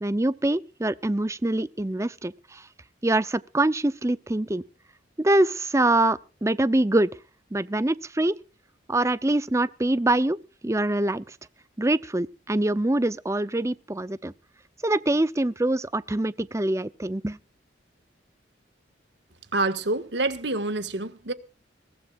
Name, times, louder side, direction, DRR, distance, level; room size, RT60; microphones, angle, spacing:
voice 1, 0.0-2.6 3.0-4.6 5.2-7.1 7.5-8.4 8.9-11.2 11.8-14.3 14.8-17.4, right 1 dB, 15° right, 0.6 m, -24 dB
voice 2, 19.5-21.3, right 2 dB, 65° right, 1.7 m, -27 dB
22.5 x 17.0 x 2.5 m
head